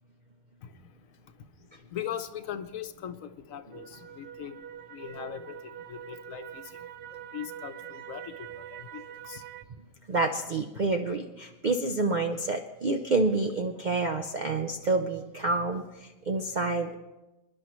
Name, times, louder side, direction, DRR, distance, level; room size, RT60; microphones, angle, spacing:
voice 1, 0.6-9.4, left 9 dB, 65° left, 1.1 m, -41 dB
sound 1, 3.7-9.6, right 10 dB, 90° right, 1.2 m, -44 dB
voice 2, 10.1-17.0, right 3 dB, 55° right, 0.5 m, -28 dB
27.0 x 11.0 x 3.1 m
omnidirectional pair, 1.6 m